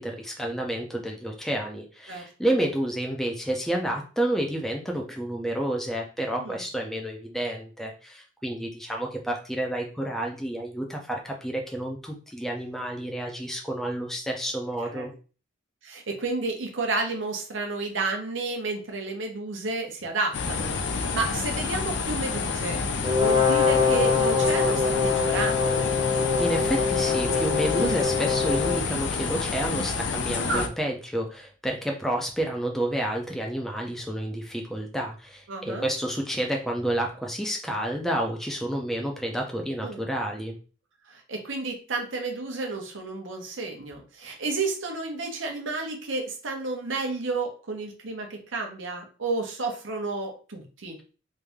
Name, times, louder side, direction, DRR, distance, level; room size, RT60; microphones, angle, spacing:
voice 1, 0.0-15.1 26.4-40.6, right 1 dB, ahead, 1 dB, 0.5 m, -30 dB
voice 2, 15.8-25.9 27.8-28.0 30.4-30.7 35.5-35.9 39.8-40.0 41.1-51.0, right 3 dB, 75° right, 3 dB, 0.9 m, -31 dB
sound 1, 20.3-30.7, left 4 dB, 60° left, 0.5 m, -29 dB
Brass instrument, 23.0-28.9, left 5 dB, 20° right, 0.9 m, -24 dB
3.3 x 2.7 x 3.4 m, 0.37 s
head